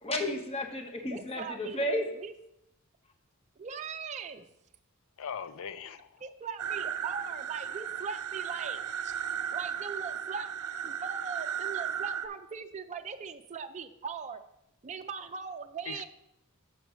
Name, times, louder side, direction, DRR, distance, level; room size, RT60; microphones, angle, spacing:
voice 1, 0.0-2.0, left 1 dB, 25° left, 4 dB, 0.9 m, -32 dB
voice 2, 1.1-2.3 3.6-4.5 6.2-9.1 9.5-10.5 10.8-14.4 14.8-16.1, right 5 dB, 30° right, 7 dB, 0.4 m, -40 dB
voice 3, 5.2-6.2 15.9-16.1, left 7 dB, 65° left, 12 dB, 0.5 m, -40 dB
sound 1, 6.6-12.3, right 8 dB, 85° right, 0.5 m, -35 dB
6.3 x 4.6 x 6.1 m, 0.81 s
head